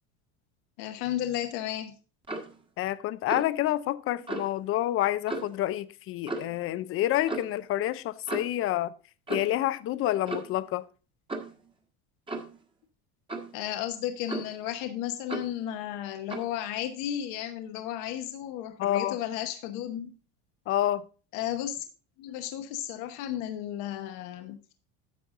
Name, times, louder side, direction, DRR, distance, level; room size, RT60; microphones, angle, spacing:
voice 1, 0.8-2.0 13.5-20.1 21.3-21.8 22.2-24.6, left 11 dB, 70° left, 1.0 m, -33 dB
Clock, 2.2-2.6 3.3-3.6 4.3-4.5 5.3-5.6 6.3-6.6 7.3-7.5 8.3-8.6 9.3-9.6 10.3-10.6 11.3-11.6 12.3-12.6 13.3-13.6 14.3-14.7 15.3-15.6 16.3-16.5, right 2 dB, 15° right, 1.4 m, -35 dB
voice 2, 2.8-8.9 9.3-10.8 18.8-19.2 20.7-21.0, left 13 dB, 40° left, 0.6 m, -28 dB
10.5 x 6.9 x 3.7 m
supercardioid pair, 130°, 33 cm